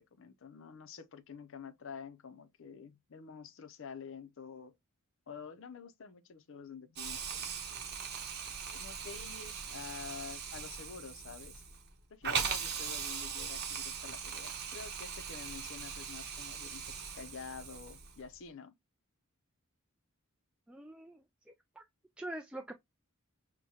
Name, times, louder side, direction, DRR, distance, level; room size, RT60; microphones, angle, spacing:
voice 1, 0.0-4.7 5.3-7.9 8.7-11.6 12.1-18.7, left 6 dB, 65° left, 0.6 m, -48 dB
Hiss, 7.0-18.2, right 6 dB, 50° right, 0.9 m, -40 dB
voice 2, 20.7-21.8 22.2-22.7, right 1 dB, 5° right, 0.3 m, -45 dB
6.1 x 2.2 x 2.8 m
head